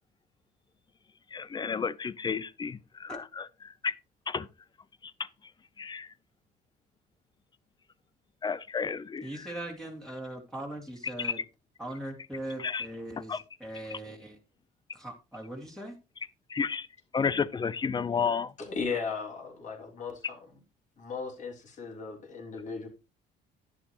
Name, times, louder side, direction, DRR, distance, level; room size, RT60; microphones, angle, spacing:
voice 1, 1.3-3.9 4.3-4.5 5.0-5.3 5.8-6.1 8.4-9.5 11.2-11.4 12.6-12.9 13.3-13.4 16.5-16.9 17.1-18.5, left 6 dB, 25° left, 0.6 m, -32 dB
voice 2, 9.2-11.4 11.8-14.4 14.9-16.0, right 1 dB, 5° left, 2.3 m, -40 dB
voice 3, 18.6-20.4 21.0-22.9, left 5 dB, 45° left, 3.6 m, -36 dB
11.0 x 9.5 x 3.0 m
cardioid pair, 110°, 17 cm